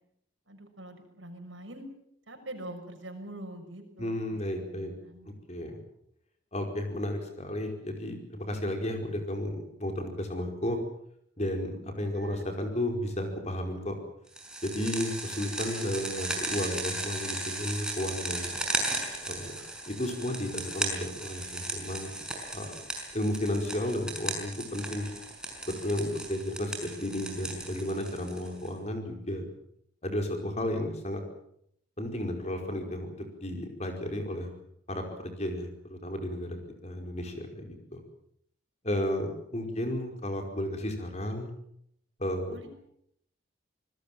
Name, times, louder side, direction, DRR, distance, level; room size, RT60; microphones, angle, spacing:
voice 1, 0.5-1.9 2.3-4.4 4.7-5.3 12.1-12.4 39.7-39.8 42.5-42.7, right 1 dB, 75° right, 4 dB, 6.3 m, -44 dB
voice 2, 4.0-5.0 5.5-5.8 6.5-10.8 11.4-14.0 14.6-18.5 19.3-19.6 19.9-22.1 22.5-22.7 23.1-25.1 25.7-29.5 30.0-31.2 32.0-34.5 34.9-38.0 38.8-41.5 42.2-42.7, left 1 dB, 35° left, 4 dB, 5.0 m, -33 dB
sound 1, 14.4-28.7, right 2 dB, 5° right, 5.6 m, -36 dB
26.5 x 20.5 x 7.6 m, 0.72 s
head